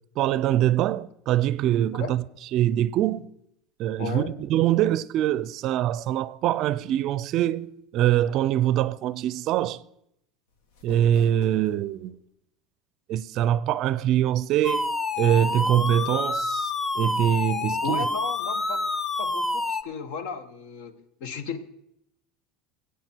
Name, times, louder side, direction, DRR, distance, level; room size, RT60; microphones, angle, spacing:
voice 1, 0.2-2.2 2.5-3.3 3.8-9.8 10.8-12.2 13.1-14.9 15.2-18.0, right 12 dB, 45° right, 0.4 m, -24 dB
voice 2, 4.0-4.3 17.8-18.9 19.2-21.6, left 6 dB, 65° left, 1.2 m, -34 dB
sound 1, 10.5-12.1, left 4 dB, 85° left, 1.8 m, -46 dB
sound 2, 14.6-19.8, left 2 dB, 10° left, 0.5 m, -27 dB
20.5 x 8.4 x 4.5 m
cardioid pair, 155°, 0 cm